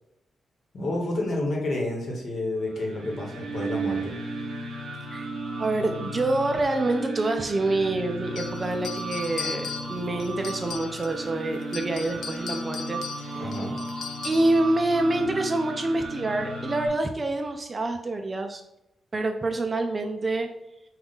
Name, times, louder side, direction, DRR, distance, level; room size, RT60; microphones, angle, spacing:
voice 1, 0.7-4.1 13.4-13.8, left 1 dB, 45° left, 0 dB, 1.1 m, -29 dB
sound 1, 2.6-16.9, right 2 dB, 50° right, 1.6 m, -35 dB
voice 2, 5.6-13.5 14.2-18.6 19.1-20.5, right 2 dB, 20° right, 5 dB, 0.4 m, -26 dB
sound 2, 8.4-11.3 11.6-14.6, left 6 dB, 80° left, 0.4 m, -38 dB
5.4 x 2.3 x 3.9 m, 0.86 s
wide cardioid pair, 180°, 0 cm